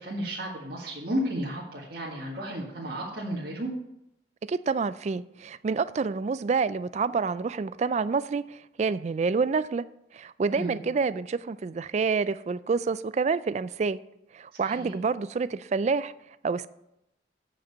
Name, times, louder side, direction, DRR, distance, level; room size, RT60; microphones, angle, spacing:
voice 1, 0.0-3.7 10.5-10.8 14.6-14.9, equal, 60° right, 1.8 m, -33 dB
voice 2, 4.5-9.8 10.1-14.0 14.3-16.1 16.4-16.7, right 4 dB, 40° right, 0.3 m, -28 dB
8.7 x 5.2 x 6.8 m
head